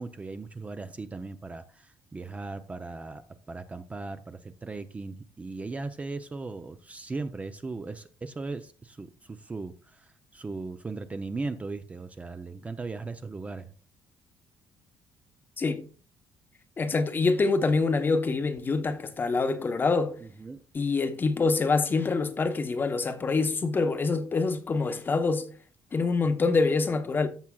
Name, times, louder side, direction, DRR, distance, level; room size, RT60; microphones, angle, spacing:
voice 1, 0.0-13.7 20.2-20.6, right 3 dB, 20° right, 0.5 m, -38 dB
voice 2, 16.8-20.2 20.7-25.5 25.9-27.3, left 4 dB, 30° left, 0.9 m, -25 dB
14.5 x 6.1 x 2.3 m
cardioid pair, 125°, 7 cm